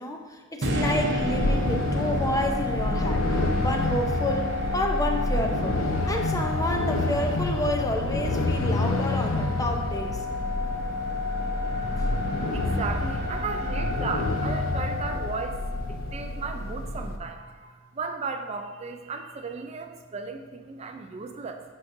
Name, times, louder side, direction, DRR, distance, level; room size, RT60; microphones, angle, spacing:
voice 1, 0.0-5.8 6.1-10.2, left 1 dB, 15° left, 3 dB, 0.6 m, -30 dB
sound 1, 0.6-16.8, left 2 dB, 60° right, 0.8 m, -31 dB
sound 2, 1.2-17.2, left 2 dB, 70° left, 0.6 m, -29 dB
voice 2, 12.5-21.6, right 4 dB, 30° right, 5 dB, 0.4 m, -35 dB
9.4 x 5.8 x 2.7 m, 1.4 s
head